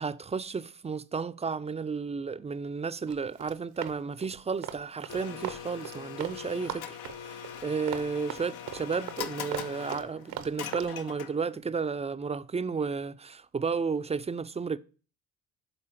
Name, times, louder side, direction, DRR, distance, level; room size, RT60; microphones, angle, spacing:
voice 1, 0.0-14.8, right 5 dB, 15° right, 0.4 m, -33 dB
Run, 3.1-6.4 6.6-10.9, right 10 dB, 70° right, 0.8 m, -39 dB
Domestic sounds home sounds, 5.1-11.6, left 9 dB, 70° left, 0.7 m, -42 dB
6.8 x 4.0 x 5.6 m
hypercardioid pair, 50°, 38 cm